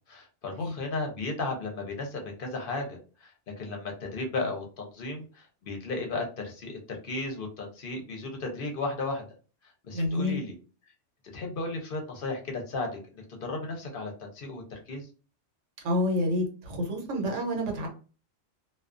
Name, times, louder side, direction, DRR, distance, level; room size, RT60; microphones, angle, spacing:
voice 1, 0.1-3.3 3.6-9.3 9.8-10.5 11.3-15.1, left 3 dB, 55° left, 2 dB, 0.7 m, -35 dB
voice 2, 9.9-10.4 15.8-17.9, left 1 dB, 85° right, 1 dB, 1.1 m, -28 dB
2.3 x 2.3 x 2.4 m, 0.37 s
omnidirectional pair, 1.2 m